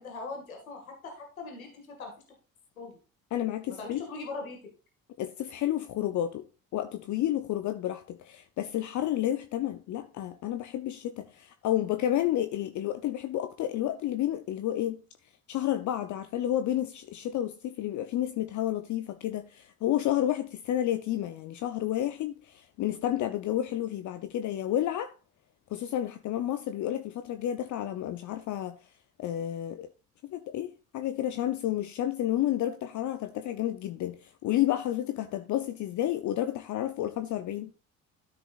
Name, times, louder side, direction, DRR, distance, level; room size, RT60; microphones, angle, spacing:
voice 1, 0.0-2.1 2.8-2.9 3.8-4.6, left 3 dB, 85° left, 2.1 m, -40 dB
voice 2, 3.3-4.0 5.2-6.4 6.7-15.0 15.5-25.1 25.7-28.8 29.2-29.9 30.3-37.7, left 12 dB, 45° left, 0.7 m, -30 dB
13.0 x 5.0 x 2.5 m
figure-of-eight pair, 50°, 41 cm